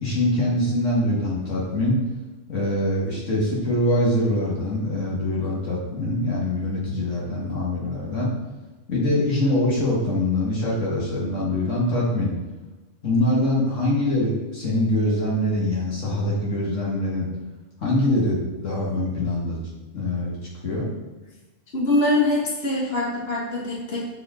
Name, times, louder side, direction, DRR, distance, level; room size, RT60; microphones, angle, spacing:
voice 1, 0.0-2.0 2.5-8.3 8.9-12.3 13.0-17.3 17.8-19.6 19.9-20.4 20.6-20.9, left 1 dB, 70° left, -4 dB, 1.9 m, -23 dB
voice 2, 21.7-24.0, left 2 dB, 50° left, -4 dB, 1.8 m, -23 dB
6.9 x 5.0 x 4.3 m, 1.1 s
omnidirectional pair, 1.4 m